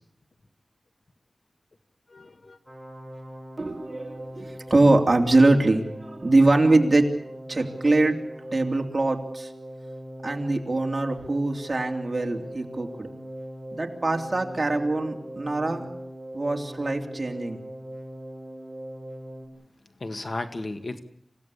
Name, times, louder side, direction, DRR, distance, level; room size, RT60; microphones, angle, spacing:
voice 1, 2.1-2.6 20.0-21.0, left 2 dB, 55° left, 8 dB, 1.7 m, -34 dB
sound 1, 2.7-19.5, equal, 10° left, 6.7 m, -40 dB
voice 2, 3.6-5.8 6.2-7.1 7.5-8.1 8.5-9.5 10.2-13.1 13.8-15.9 16.3-17.6, right 2 dB, 35° right, 3 dB, 3.1 m, -23 dB
27.5 x 16.5 x 8.5 m, 0.73 s
wide cardioid pair, 95°, 0 cm